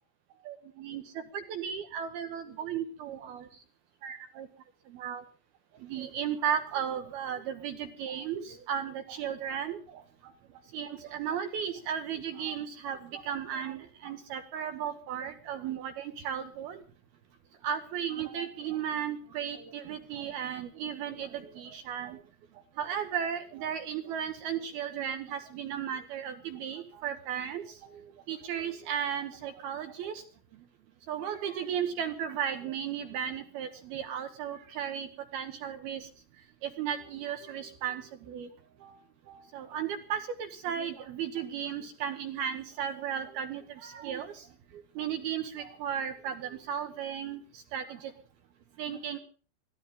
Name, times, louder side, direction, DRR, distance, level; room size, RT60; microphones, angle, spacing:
voice 1, 0.5-1.0 1.3-3.5 4.0-4.5 4.9-5.2 5.9-9.8 10.7-16.8 17.6-22.2 22.8-27.6 28.3-30.1 31.1-35.1 35.3-36.1 36.6-38.0 38.3-38.5 38.8-39.0 39.3-44.3 45.0-47.4 47.7-48.1 48.8-49.2, right 8 dB, 70° right, 8 dB, 2.4 m, -35 dB
22.5 x 15.0 x 3.7 m, 0.40 s
omnidirectional pair, 5.9 m